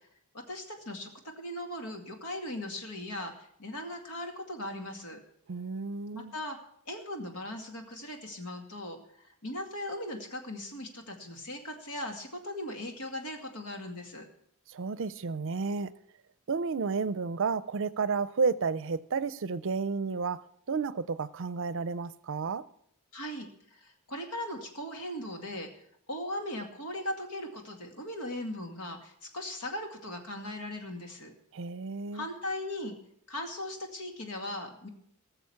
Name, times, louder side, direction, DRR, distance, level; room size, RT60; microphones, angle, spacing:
voice 1, 0.3-5.2 6.1-6.6 6.9-14.3 23.1-25.7 26.1-31.3 32.1-33.0 33.3-34.9, left 1 dB, 85° left, 2.3 m, -38 dB
voice 2, 5.5-6.3 14.7-15.9 16.5-22.6 31.5-32.3, right 4 dB, 60° right, 0.5 m, -32 dB
19.0 x 6.9 x 5.8 m
head